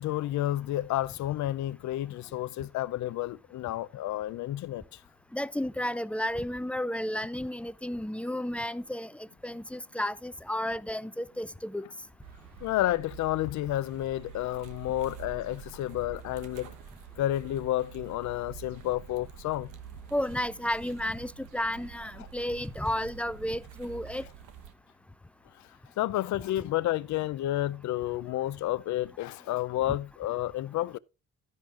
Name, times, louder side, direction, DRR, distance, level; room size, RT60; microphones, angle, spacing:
voice 1, 0.0-5.0 12.6-16.7 17.2-19.7 26.0-31.0, left 14 dB, 70° left, 0.5 m, -30 dB
voice 2, 5.3-11.8 20.1-24.3 29.9-30.0, left 1 dB, 5° left, 0.5 m, -32 dB
sound 1, 12.2-24.7, right 8 dB, 85° right, 1.1 m, -47 dB
13.0 x 10.5 x 2.5 m
cardioid pair, 90°, 30 cm